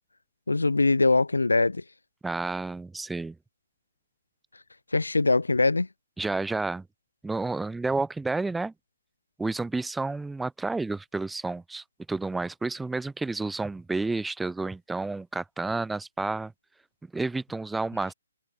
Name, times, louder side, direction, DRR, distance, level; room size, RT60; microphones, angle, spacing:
voice 1, 0.5-1.8 4.9-5.9, left 3 dB, 80° left, 5.0 m, -22 dB
voice 2, 2.2-3.4 6.2-6.9 7.2-8.7 9.4-16.5 17.1-18.1, right 3 dB, 5° right, 1.5 m, -30 dB
figure-of-eight pair, 135°, 0 cm